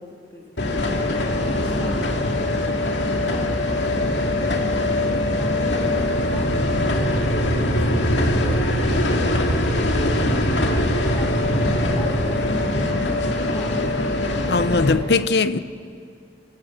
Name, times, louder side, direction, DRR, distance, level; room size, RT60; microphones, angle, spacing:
voice 1, 0.0-2.8 3.3-5.0 5.4-6.5 6.9-9.7 10.2-14.0, left 1 dB, 15° left, 3.0 m, -38 dB
sound 1, 0.6-14.9, left 1 dB, 90° left, 2.2 m, -22 dB
voice 2, 14.5-15.6, left 4 dB, 70° left, 0.7 m, -19 dB
26.5 x 13.5 x 8.2 m
head